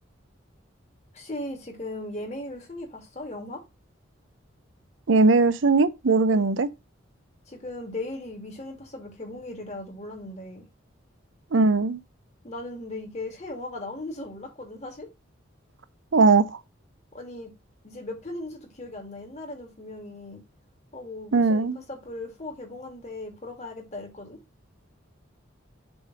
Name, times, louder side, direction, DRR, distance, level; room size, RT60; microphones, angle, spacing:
voice 1, 1.1-3.6 6.3-6.4 7.5-10.6 12.4-15.1 17.1-17.5 17.8-20.4 20.9-24.4, left 2 dB, 35° left, 2.4 m, -38 dB
voice 2, 5.1-6.7 11.5-12.0 16.1-16.5 21.3-21.8, right 3 dB, 75° right, 0.7 m, -19 dB
7.0 x 3.3 x 6.1 m
head